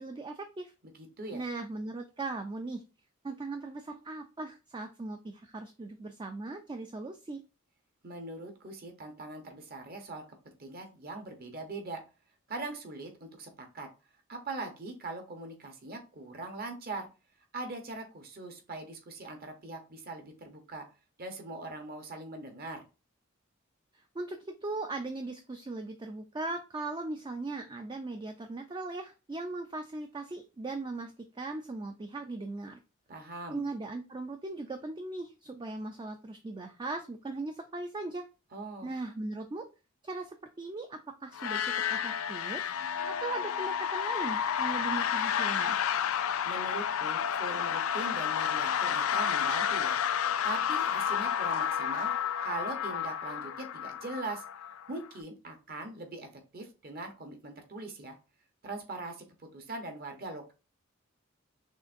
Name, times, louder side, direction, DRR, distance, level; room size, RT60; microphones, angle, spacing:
voice 1, 0.0-0.7 1.3-2.8 3.2-7.4 24.1-32.8 33.5-38.2 38.8-39.7 40.0-42.7 43.1-45.8, right 2 dB, 20° right, 5 dB, 0.4 m, -38 dB
voice 2, 0.8-1.4 8.0-10.2 10.6-12.0 12.5-13.9 14.3-17.1 17.5-20.9 21.2-22.8 33.1-33.6 38.5-38.9 46.4-50.0 50.4-52.1 52.4-54.4 54.9-58.2 58.6-60.5, right 2 dB, 45° right, 5 dB, 0.9 m, -41 dB
sound 1, 41.3-55.1, left 8 dB, 90° left, 0.4 m, -31 dB
6.2 x 2.5 x 2.5 m, 0.31 s
head